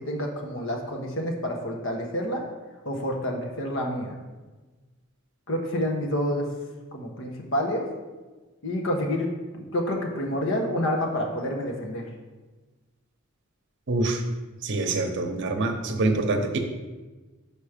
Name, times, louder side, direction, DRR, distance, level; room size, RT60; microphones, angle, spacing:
voice 1, 0.0-2.4 2.8-4.2 5.5-6.5 6.9-7.9 8.6-12.1, equal, 65° left, 1 dB, 1.2 m, -28 dB
voice 2, 13.9-14.2 14.6-16.6, right 2 dB, 60° right, 5 dB, 0.8 m, -25 dB
6.0 x 5.1 x 5.0 m, 1.2 s
head